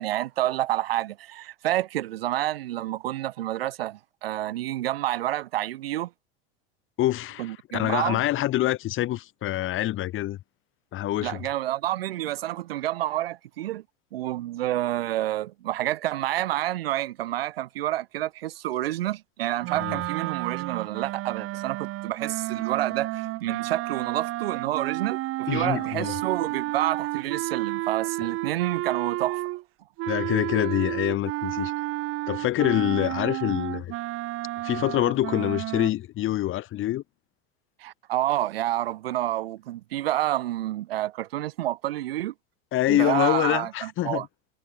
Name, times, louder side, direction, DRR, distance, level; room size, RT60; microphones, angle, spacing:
voice 1, 0.0-6.1 7.4-8.2 11.2-13.8 14.1-29.4 37.8-42.3 42.9-44.3, right 14 dB, 85° right, 0.8 m, -29 dB
voice 2, 7.0-10.4 10.9-11.4 19.7-20.0 25.5-26.2 30.1-31.7 32.3-33.9 34.6-37.0 42.7-44.3, left 14 dB, 45° left, 2.5 m, -26 dB
sound 1, 19.6-29.6 30.0-35.9, right 18 dB, 50° right, 1.5 m, -31 dB
hypercardioid pair, 95°, 29 cm